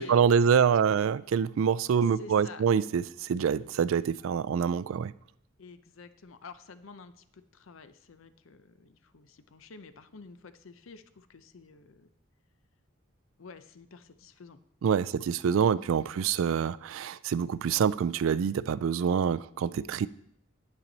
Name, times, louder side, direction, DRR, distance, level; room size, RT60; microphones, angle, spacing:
voice 1, 0.0-5.1 14.8-20.1, right 7 dB, 65° right, 0.3 m, -26 dB
voice 2, 1.9-2.6 5.6-12.1 13.4-14.6 15.8-15.9, left 4 dB, 65° left, 0.6 m, -49 dB
8.8 x 8.8 x 4.0 m
head